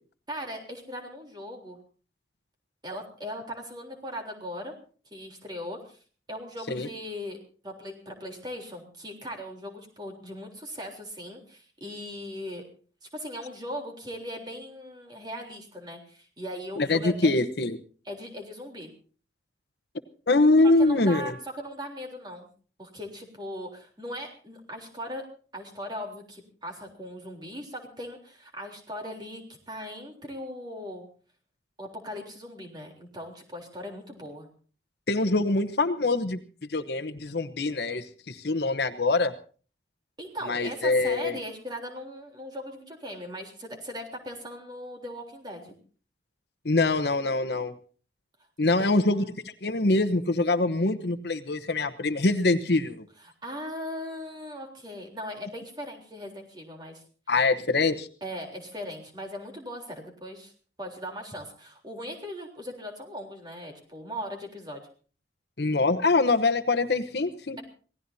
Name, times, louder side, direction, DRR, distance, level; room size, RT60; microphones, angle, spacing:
voice 1, 0.3-1.8 2.8-4.7 5.1-6.0 6.3-7.4 7.6-12.7 13.1-17.3 18.1-18.9 20.8-22.5 22.8-25.3 25.5-31.1 31.8-34.5 40.2-45.7 48.7-49.3 53.2-57.0 58.2-60.5 60.8-64.8, equal, 25° right, 2 dB, 3.6 m, -39 dB
voice 2, 16.8-17.8 20.3-21.3 35.1-36.4 36.7-39.3 40.5-41.4 46.6-47.7 48.6-49.2 49.6-53.0 57.3-58.1 65.6-67.6, left 2 dB, 65° left, 10 dB, 1.0 m, -24 dB
26.5 x 18.0 x 2.8 m, 0.41 s
head